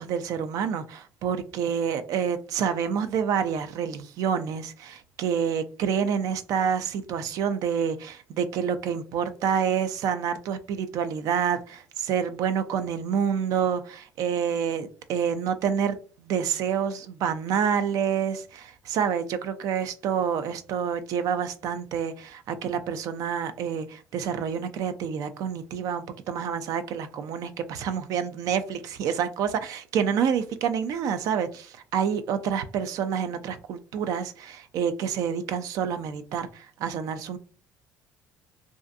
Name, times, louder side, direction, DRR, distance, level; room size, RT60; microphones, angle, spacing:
voice 1, 0.0-37.4, right 7 dB, 65° right, 0.4 m, -28 dB
2.6 x 2.4 x 2.4 m
supercardioid pair, 85°, 6 cm